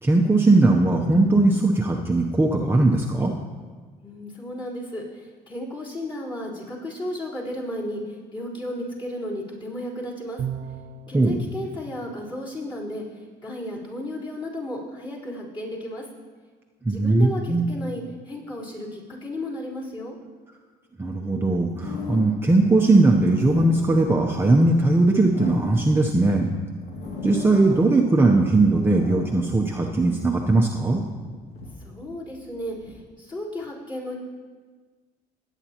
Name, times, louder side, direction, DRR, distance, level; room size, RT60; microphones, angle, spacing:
voice 1, 0.0-3.3 11.1-11.4 16.9-17.7 21.0-26.5 27.2-31.0, right 2 dB, 15° right, 0 dB, 0.7 m, -19 dB
voice 2, 4.0-10.4 11.1-13.0 13.4-16.0 16.9-20.2 31.8-34.2, left 1 dB, 30° left, -8 dB, 3.9 m, -33 dB
Bowed string instrument, 10.4-11.3, right 8 dB, 70° right, 0.7 m, -33 dB
sound 1, 21.7-22.5 23.1-26.3 26.7-28.1 28.4-30.3 30.9-33.0, left 3 dB, 75° left, 2.4 m, -37 dB
19.0 x 9.0 x 2.9 m, 1.5 s
cardioid pair, 110°, 17 cm